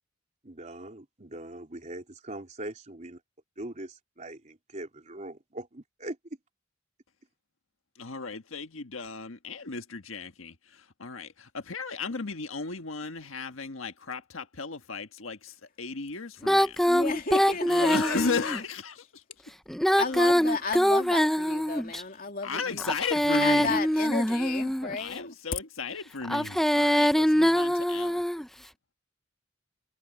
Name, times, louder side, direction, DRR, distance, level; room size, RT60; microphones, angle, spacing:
voice 1, 0.4-3.2 3.6-6.2, right 1 dB, 40° right, 3.6 m, -41 dB
voice 2, 8.0-16.8 17.7-19.2 20.1-20.3 22.4-23.8 25.0-28.2, left 4 dB, 85° left, 1.6 m, -35 dB
Female singing, 16.4-18.6 19.7-22.0 22.8-25.0 26.2-28.5, equal, ahead, 0.6 m, -24 dB
voice 3, 16.8-18.6 20.0-22.8 23.3-25.4, left 4 dB, 45° left, 2.8 m, -33 dB
head